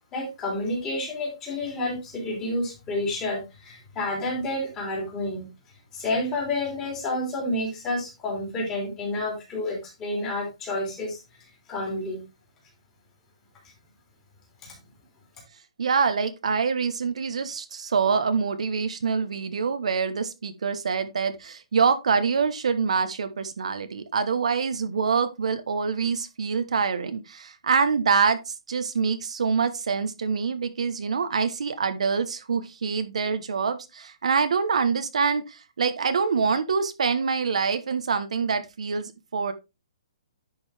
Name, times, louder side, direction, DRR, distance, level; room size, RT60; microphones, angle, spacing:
voice 1, 0.1-5.5 5.9-11.2 11.7-12.2 14.6-14.8, left 2 dB, 15° left, -2 dB, 3.2 m, -29 dB
voice 2, 15.8-39.5, right 5 dB, 70° right, 10 dB, 1.1 m, -25 dB
10.5 x 5.3 x 3.4 m, 0.25 s
hypercardioid pair, 170°, 4 cm